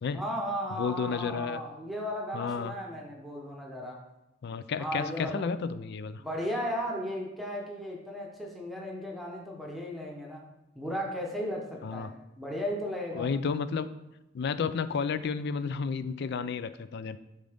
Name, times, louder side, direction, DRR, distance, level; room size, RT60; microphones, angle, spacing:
voice 1, 0.1-4.0 4.8-5.4 6.2-10.5 10.8-13.3, equal, ahead, -2 dB, 0.9 m, -35 dB
voice 2, 0.8-1.6 2.3-2.7 4.4-6.2 11.8-12.1 13.1-13.9 14.3-17.2, left 5 dB, 55° left, 13 dB, 0.4 m, -32 dB
8.9 x 3.8 x 3.5 m, 0.96 s
head